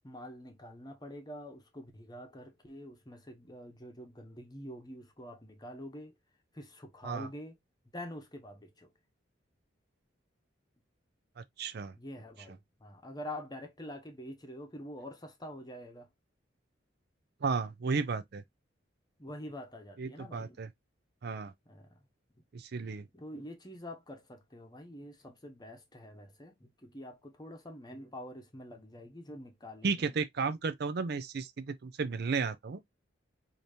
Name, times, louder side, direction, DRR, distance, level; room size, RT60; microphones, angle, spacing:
voice 1, 0.0-6.1 6.5-7.5 7.9-8.9 12.0-16.1 19.2-20.6 21.7-21.9 23.1-30.1, left 1 dB, 20° left, 0.9 m, -46 dB
voice 2, 11.4-11.9 17.4-18.4 20.0-20.7 21.2-21.5 22.5-23.0 29.8-32.8, right 4 dB, 55° right, 0.5 m, -33 dB
5.0 x 2.8 x 2.7 m
head